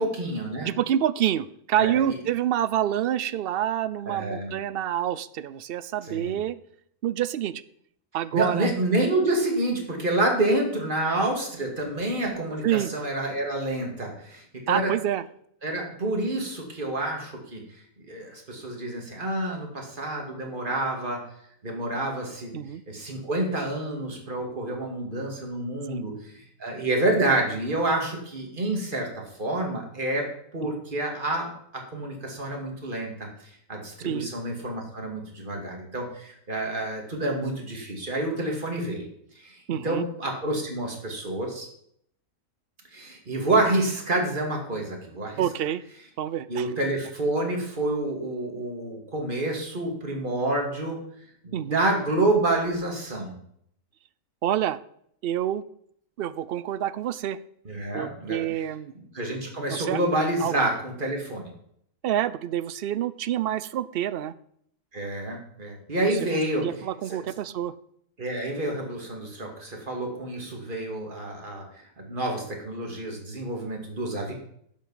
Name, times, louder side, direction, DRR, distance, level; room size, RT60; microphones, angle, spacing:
voice 1, 0.0-0.7 1.8-2.2 4.1-4.5 6.1-6.4 8.3-14.9 15.6-17.6 18.1-21.2 21.6-22.6 22.9-29.1 29.4-30.2 30.5-33.3 33.7-39.0 39.4-41.7 42.9-45.4 46.5-51.0 51.4-53.3 57.6-58.5 58.9-61.5 64.9-66.7 67.1-67.2 68.2-74.3, right 2 dB, 40° right, 1 dB, 2.5 m, -28 dB
voice 2, 0.6-6.6 7.0-7.6 8.1-8.7 12.6-12.9 14.7-15.2 22.5-22.8 25.9-26.0 30.7-30.8 34.0-34.3 39.7-40.0 45.4-45.8 46.2-46.7 51.5-51.8 54.4-54.8 55.2-55.6 56.2-57.4 57.9-58.9 59.7-60.0 60.4-60.5 62.0-64.3 66.1-66.2 66.6-67.7, right 11 dB, 60° right, 16 dB, 0.6 m, -27 dB
11.0 x 7.6 x 5.6 m, 0.68 s
omnidirectional pair, 1.4 m